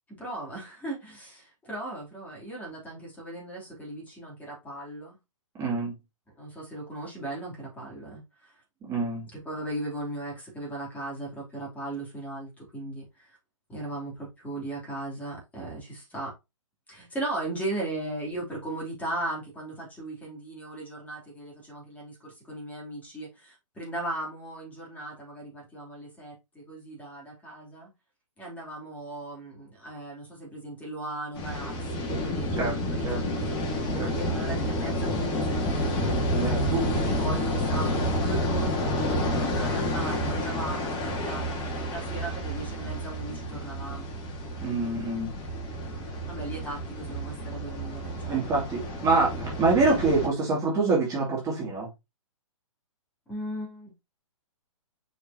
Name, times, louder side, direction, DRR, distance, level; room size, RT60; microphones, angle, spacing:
voice 1, 0.1-5.2 6.4-8.6 9.3-13.4 13.7-16.3 16.9-27.9 28.4-33.5 34.0-35.8 36.6-41.4 41.9-44.1 46.3-48.5 53.3-53.9, right 1 dB, 10° left, 3.2 m, -37 dB
voice 2, 5.6-5.9 8.8-9.3 32.5-32.7 33.0-33.2 33.9-34.1 36.3-36.9 44.6-45.3 48.3-51.9, right 3 dB, 20° right, 2.7 m, -26 dB
sound 1, 31.3-50.3, equal, 25° left, 1.9 m, -29 dB
6.3 x 5.4 x 2.9 m
hypercardioid pair, 135°, 17 cm